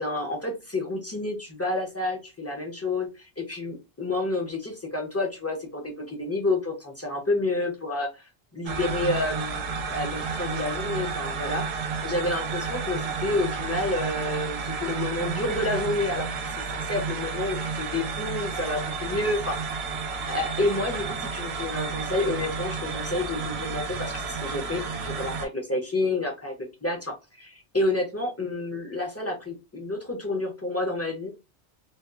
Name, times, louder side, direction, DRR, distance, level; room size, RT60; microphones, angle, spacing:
voice 1, 0.0-19.8 20.3-31.3, left 2 dB, 20° left, 1 dB, 0.4 m, -29 dB
sound 1, 8.7-25.5, right 5 dB, 80° right, 0.8 m, -31 dB
2.7 x 2.2 x 2.3 m, 0.27 s
omnidirectional pair, 1.1 m